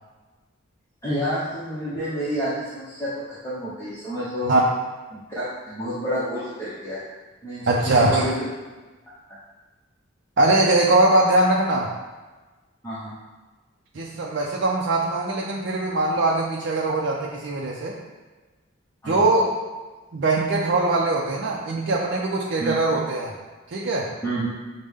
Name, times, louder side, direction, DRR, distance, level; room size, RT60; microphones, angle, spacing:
voice 1, 1.0-4.5 5.1-7.0 7.4-8.3 9.3-9.4 12.8-13.1 19.0-19.2 22.6-22.8 24.2-24.5, equal, 15° left, -12 dB, 0.8 m, -29 dB
voice 2, 7.7-8.3 10.4-11.9 13.9-18.0 19.1-19.5 20.1-23.3 23.7-24.1, right 2 dB, 60° right, -3 dB, 0.5 m, -21 dB
6.4 x 2.1 x 3.5 m, 1.3 s
head